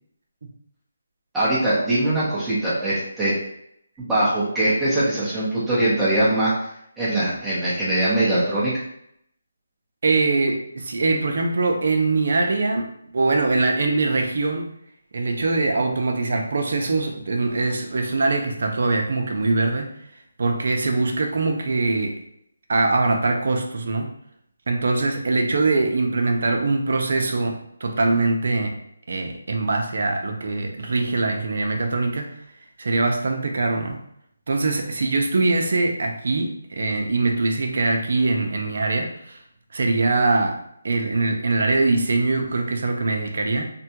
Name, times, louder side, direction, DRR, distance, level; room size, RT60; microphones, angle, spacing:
voice 1, 1.3-3.3 4.0-6.5 7.0-8.7, right 1 dB, 5° right, -12 dB, 0.8 m, -22 dB
voice 2, 10.0-12.9 13.1-14.7 15.1-19.9 20.4-22.1 22.7-24.1 24.7-27.6 27.8-28.7 29.1-32.3 32.8-34.0 34.5-39.4 39.7-40.6 40.8-43.7, right 3 dB, 65° right, 3 dB, 0.6 m, -22 dB
3.3 x 2.2 x 2.8 m, 0.73 s
figure-of-eight pair, 160°, 0 cm